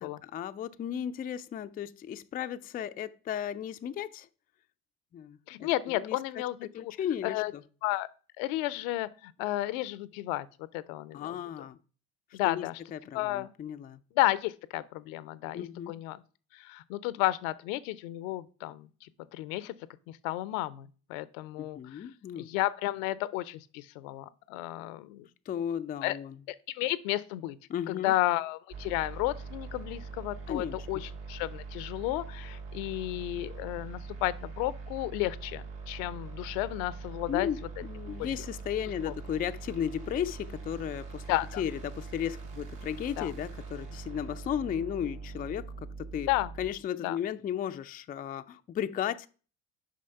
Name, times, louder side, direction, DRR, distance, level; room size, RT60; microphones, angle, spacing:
voice 1, 0.0-4.3 5.1-5.7 5.9-6.2 6.7-7.6 11.1-11.8 12.3-12.6 12.9-14.0 15.5-15.9 21.6-22.5 25.5-26.4 27.7-28.1 30.5-30.8 37.3-46.3 46.6-49.3, left 9 dB, 20° left, 0.4 m, -35 dB
voice 2, 5.5-6.9 7.2-7.5 7.8-8.1 8.4-10.5 10.7-11.4 12.3-12.8 13.1-13.5 14.2-16.2 16.5-19.7 20.1-22.1 22.4-25.3 26.0-26.2 26.7-27.6 27.9-37.5 38.2-38.3 39.1-39.2 41.3-41.6 43.2-43.3 46.3-46.5 47.0-47.2, left 16 dB, 65° left, 0.6 m, -32 dB
sound 1, 28.7-46.7, right 4 dB, 70° right, 2.7 m, -42 dB
6.5 x 5.2 x 5.6 m
hypercardioid pair, 60°, 44 cm